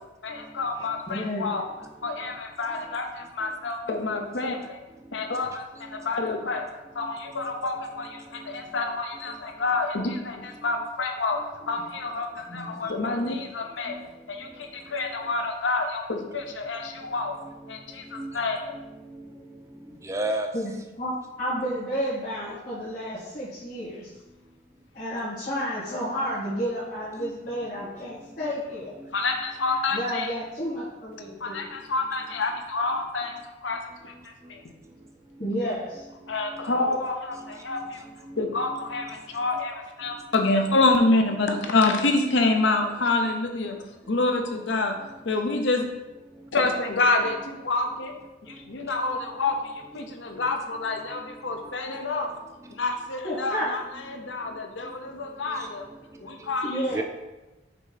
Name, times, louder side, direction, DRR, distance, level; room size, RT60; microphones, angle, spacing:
voice 1, 0.2-1.7 2.0-4.8 5.1-6.7 6.9-14.0 14.3-17.4 17.7-18.8 29.1-30.4 31.4-34.6 36.3-38.1 38.4-44.9 45.2-45.9 46.5-48.1 48.4-52.3 52.7-55.9 56.2-57.0, left 3 dB, 80° left, 4 dB, 0.8 m, -27 dB
voice 2, 1.1-1.5 12.5-12.7 20.5-20.7 21.0-21.1 21.4-24.1 24.9-28.9 29.9-31.7 35.4-36.1 53.2-53.6 56.6-57.0, equal, 45° left, -12 dB, 1.8 m, -31 dB
voice 3, 18.7-19.3 20.0-20.5 27.2-27.4 36.5-36.7 37.4-37.9 38.2-39.2 51.9-52.0 55.5-55.7 56.9-57.0, right 1 dB, 15° right, 5 dB, 0.4 m, -35 dB
5.8 x 4.0 x 4.1 m, 1.1 s
head